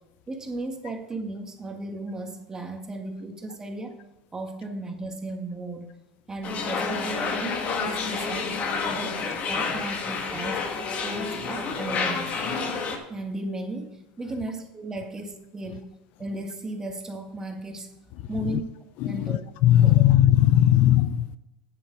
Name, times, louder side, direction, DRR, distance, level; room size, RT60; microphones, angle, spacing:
voice 1, 0.3-4.0 4.3-5.9 6.3-8.5 8.8-12.3 13.1-15.9 16.2-17.9 18.3-18.6 19.0-19.4 19.8-20.0, right 2 dB, 15° right, 4 dB, 1.7 m, -35 dB
sound 1, 6.4-13.0, left 4 dB, 40° left, 1.5 m, -29 dB
voice 2, 8.8-9.1 18.2-18.6 19.0-21.4, left 12 dB, 60° left, 15 dB, 0.4 m, -20 dB
9.2 x 7.8 x 4.7 m, 1.0 s
supercardioid pair, 105°, 3 cm